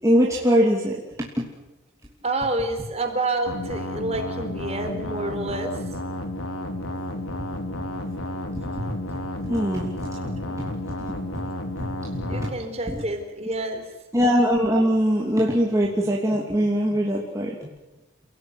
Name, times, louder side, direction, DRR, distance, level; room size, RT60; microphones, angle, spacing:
voice 1, 0.0-1.5 8.5-8.8 9.4-9.9 10.5-10.7 11.1-11.2 11.8-12.5 12.9-13.0 14.1-17.7, equal, 15° right, -3 dB, 3.0 m, -22 dB
voice 2, 2.2-5.7 10.2-10.3 12.3-13.8, right 2 dB, 30° right, 5 dB, 4.2 m, -28 dB
sound 1, 3.5-12.5, left 1 dB, 90° left, 3.6 m, -32 dB
30.0 x 17.5 x 9.7 m, 1.0 s
head